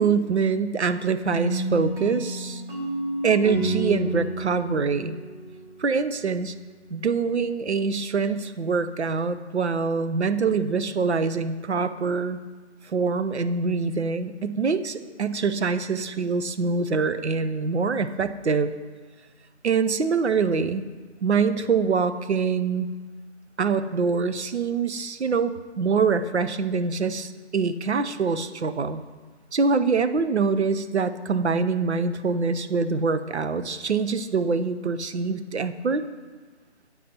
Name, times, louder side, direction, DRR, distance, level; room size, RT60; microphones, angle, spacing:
voice 1, 0.0-2.6 3.2-5.2 5.8-6.5 6.9-12.4 12.9-18.7 19.6-20.8 21.2-22.9 23.6-29.0 29.5-36.0, right 5 dB, 70° right, 12 dB, 0.7 m, -24 dB
sound 1, 1.3-6.1, right 2 dB, 45° right, 3.1 m, -30 dB
15.0 x 8.3 x 2.9 m, 1.4 s
figure-of-eight pair, 180°, 35 cm